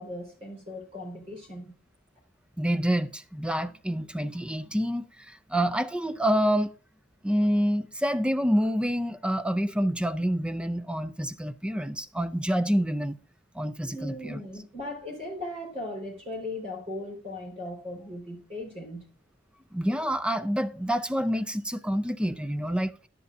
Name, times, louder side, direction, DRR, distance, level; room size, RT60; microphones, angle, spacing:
voice 1, 0.0-1.8 13.8-19.1, left 1 dB, 35° right, 4.0 m, -38 dB
voice 2, 2.6-5.0 5.5-6.7 7.2-13.2 13.6-14.4 19.7-22.9, equal, 5° right, 0.5 m, -27 dB
10.5 x 10.0 x 2.6 m
head